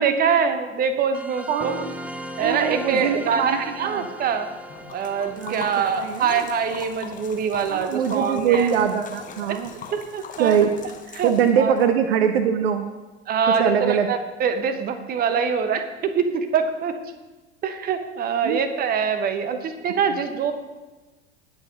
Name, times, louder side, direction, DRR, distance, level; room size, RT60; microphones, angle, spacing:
voice 1, 0.0-1.7 2.4-4.5 4.9-8.7 9.5-9.6 9.9-10.7 11.1-11.3 11.6-11.7 13.3-17.0 17.6-20.5, right 6 dB, 25° right, 8 dB, 1.2 m, -24 dB
sound 1, 1.1-8.2, equal, 5° right, 0.5 m, -39 dB
voice 2, 1.5-2.0 2.4-4.1 5.3-6.5 7.7-9.7 10.4-10.7 11.2-12.9 13.5-14.1 18.4-18.6, right 8 dB, 60° right, 9 dB, 0.9 m, -23 dB
Liquid, 4.7-11.9, left 5 dB, 20° left, 1.5 m, -40 dB
19.0 x 7.1 x 4.1 m, 1.2 s
figure-of-eight pair, 85°, 35 cm